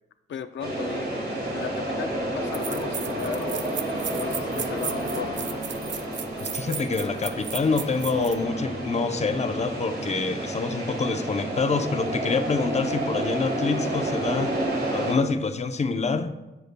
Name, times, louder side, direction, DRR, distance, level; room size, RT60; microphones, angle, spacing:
voice 1, 0.3-1.1 1.5-3.7 4.1-5.5, left 8 dB, 90° left, 9 dB, 0.4 m, -36 dB
sound 1, 0.6-15.1, right 1 dB, 60° right, 1.9 m, -30 dB
sound 2, 2.0-2.1 2.5-8.4, right 8 dB, 80° right, 0.5 m, -35 dB
voice 2, 6.4-14.5 14.9-16.3, left 4 dB, 35° left, 8 dB, 0.6 m, -26 dB
10.0 x 8.0 x 2.2 m, 1.0 s
wide cardioid pair, 100°, 19 cm